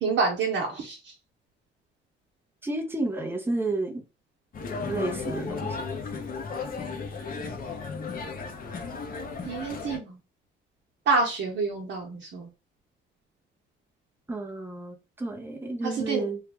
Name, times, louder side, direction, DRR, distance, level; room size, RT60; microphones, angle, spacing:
voice 1, 0.0-1.1 9.4-10.2 11.1-12.5 15.8-16.2, right 4 dB, 65° right, 1.0 m, -27 dB
voice 2, 2.6-4.0 4.9-5.8 14.3-16.4, right 2 dB, 10° right, 0.8 m, -31 dB
sound 1, 4.5-10.0, left 4 dB, 45° left, 0.8 m, -34 dB
3.3 x 2.3 x 3.4 m
cardioid pair, 90°, 20 cm